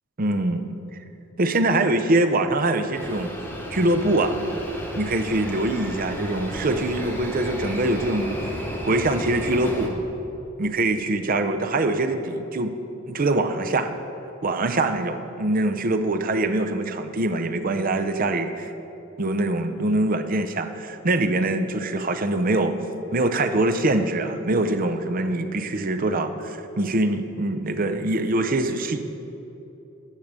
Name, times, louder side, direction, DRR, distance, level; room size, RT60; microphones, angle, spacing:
voice 1, 0.2-0.6 1.4-3.3 3.7-4.4 4.9-8.4 8.9-9.9 10.6-12.7 13.1-13.9 14.4-18.7 19.2-22.7 23.1-29.1, right 2 dB, 45° right, 7 dB, 0.6 m, -23 dB
sound 1, 2.9-9.9, equal, 10° left, 1.2 m, -33 dB
10.5 x 6.4 x 6.7 m, 2.9 s
head